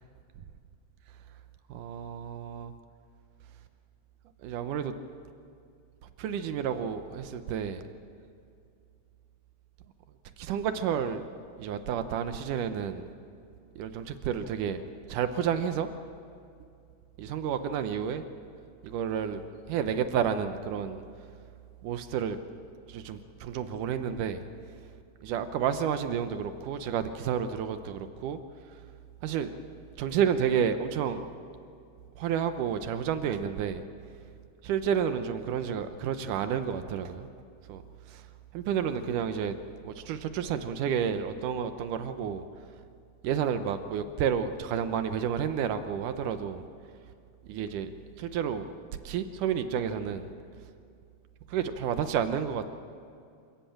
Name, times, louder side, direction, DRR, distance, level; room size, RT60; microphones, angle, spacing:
voice 1, 1.7-2.7 4.4-4.9 6.2-7.8 10.4-11.2 11.6-13.0 13.8-14.8 15.1-15.9 17.2-18.2 18.8-19.4 19.7-21.0 21.8-22.4 22.9-24.4 25.2-28.4 29.2-29.5 30.0-31.2 32.2-33.8 34.6-37.3 37.7-37.8 38.1-38.2 38.5-39.5 39.8-42.4 43.2-46.7 47.5-47.9 48.2-48.6 49.1-50.3 51.5-52.6, right 8 dB, 80° right, 9 dB, 1.9 m, -30 dB
27.5 x 16.0 x 8.7 m, 2.4 s
omnidirectional pair, 4.8 m